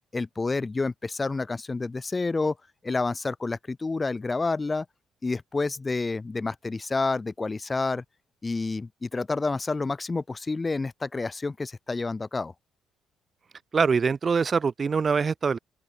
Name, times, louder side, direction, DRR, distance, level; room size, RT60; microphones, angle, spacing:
voice 1, 0.1-2.6 2.8-4.9 5.2-8.0 8.4-12.5, left 3 dB, 20° left, 0.5 m, -29 dB
voice 2, 13.7-15.6, right 5 dB, 30° right, 0.5 m, -23 dB
open air
cardioid pair, 115°, 0 cm